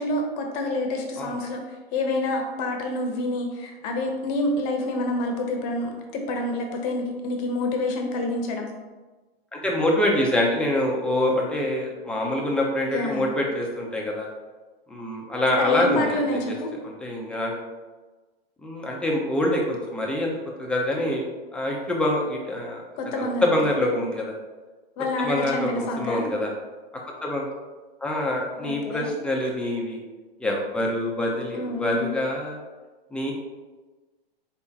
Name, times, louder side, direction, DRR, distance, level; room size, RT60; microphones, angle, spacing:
voice 1, 0.0-8.7 12.9-13.3 15.6-16.7 23.0-23.5 25.0-26.3 28.6-29.1 31.5-32.1, left 2 dB, 40° left, 3 dB, 0.8 m, -27 dB
voice 2, 9.5-14.3 14.9-16.2 16.8-17.5 18.6-20.3 20.6-21.2 21.5-22.8 23.2-24.3 25.2-26.5 27.2-27.5 28.0-30.0 30.4-32.6 33.1-33.3, left 1 dB, 5° left, -2 dB, 0.6 m, -25 dB
4.3 x 3.5 x 2.8 m, 1.2 s
hypercardioid pair, 120°, 31 cm